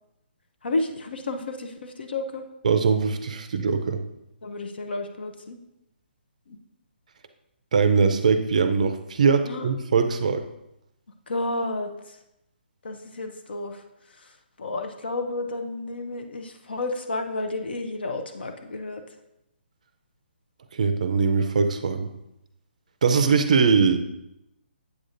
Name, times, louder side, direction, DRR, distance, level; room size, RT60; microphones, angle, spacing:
voice 1, 0.6-2.4 4.4-5.6 6.5-6.6 9.4-9.7 11.3-11.9 12.8-13.8 14.6-19.0, left 2 dB, 65° left, 6 dB, 0.7 m, -31 dB
voice 2, 2.6-4.0 7.7-10.4 20.7-22.1 23.0-24.0, right 5 dB, 40° right, 9 dB, 0.4 m, -21 dB
8.2 x 6.6 x 2.5 m, 0.86 s
hypercardioid pair, 175°, 6 cm